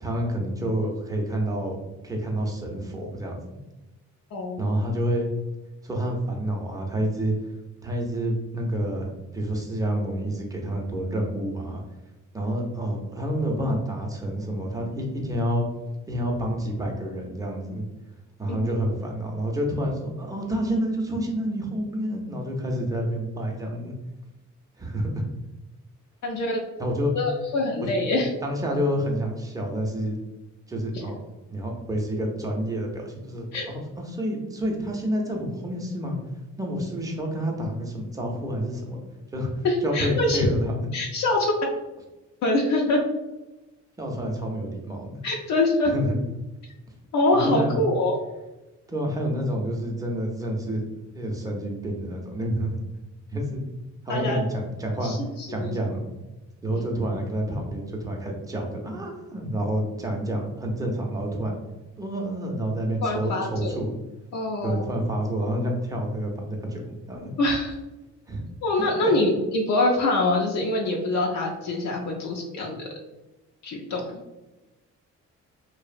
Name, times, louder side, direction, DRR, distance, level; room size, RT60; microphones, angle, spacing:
voice 1, 0.0-1.8 2.0-3.3 4.6-5.3 5.8-7.3 7.8-11.8 12.3-15.7 16.1-17.8 18.4-23.9 24.8-25.2 26.8-27.1 27.8-30.2 30.7-31.1 31.5-36.2 36.6-39.0 39.3-39.5 39.8-40.8 44.0-45.2 45.8-46.2 47.3-47.8 48.9-50.8 51.1-52.8 53.3-53.6 54.0-55.2 55.5-56.1 56.6-61.6 62.0-64.0 64.6-67.3 68.3-68.4 68.8-69.1, equal, 10° right, 0 dB, 0.5 m, -28 dB
voice 2, 4.3-4.6 18.5-18.6 26.2-26.6 27.1-28.3 33.5-33.6 39.6-40.5 40.9-41.5 42.4-43.0 45.2-45.9 47.1-48.2 54.1-54.4 55.0-55.7 56.7-56.8 63.0-63.8 64.3-64.9 67.4-67.8 68.6-72.8 73.6-74.0, left 2 dB, 65° left, -1 dB, 0.5 m, -24 dB
2.7 x 2.0 x 2.5 m, 1.0 s
cardioid pair, 90°, 30 cm